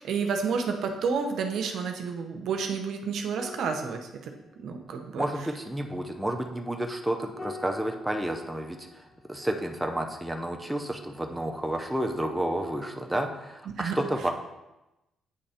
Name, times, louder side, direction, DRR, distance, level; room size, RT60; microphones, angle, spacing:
voice 1, 0.0-4.3 4.6-5.2 13.8-13.9, right 5 dB, 70° right, 4 dB, 0.8 m, -30 dB
sound 1, 3.3-12.0 12.3-12.5, left 2 dB, 30° left, 1.4 m, -49 dB
voice 2, 5.1-14.3, right 1 dB, 5° right, 3 dB, 0.7 m, -31 dB
8.6 x 3.2 x 4.3 m, 0.96 s
cardioid pair, 90°, 0 cm